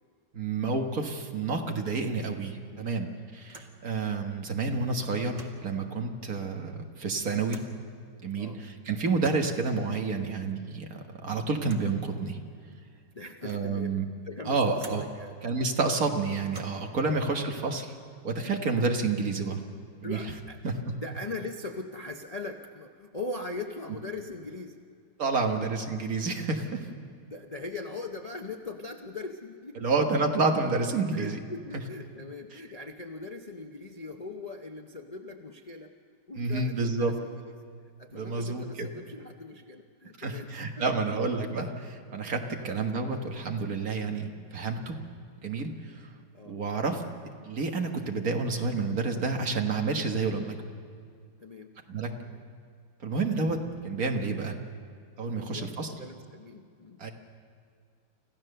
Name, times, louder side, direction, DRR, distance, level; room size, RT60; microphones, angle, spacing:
voice 1, 0.3-7.6 8.2-12.4 13.4-14.1 14.5-15.0 15.4-17.9 18.2-19.6 20.0-20.2 20.6-20.7 25.2-26.9 29.8-31.4 32.5-32.6 36.4-37.2 38.1-38.9 40.2-45.0 45.4-46.1 46.5-47.0 47.4-50.6 51.9-52.1 53.0-54.6 55.2-55.9 57.0-57.1, right 4 dB, 50° right, 3 dB, 1.9 m, -29 dB
sound 1, 3.4-3.8 5.2-5.7 7.5-7.8 9.0-9.6 11.6-12.0 12.7-12.8 13.2-13.8 14.8-15.2 16.4-17.0, right 2 dB, 25° right, 1.6 m, -48 dB
voice 2, 13.1-13.9 14.2-15.4 20.0-20.6 20.9-24.8 27.3-29.9 31.1-35.9 36.3-37.3 38.0-40.6 42.6-42.8 43.1-43.2 46.3-46.6 51.4-51.7 52.2-52.4 55.2-57.0, left 3 dB, 80° left, 3 dB, 0.3 m, -40 dB
26.5 x 15.5 x 6.7 m, 2.2 s
omnidirectional pair, 2.1 m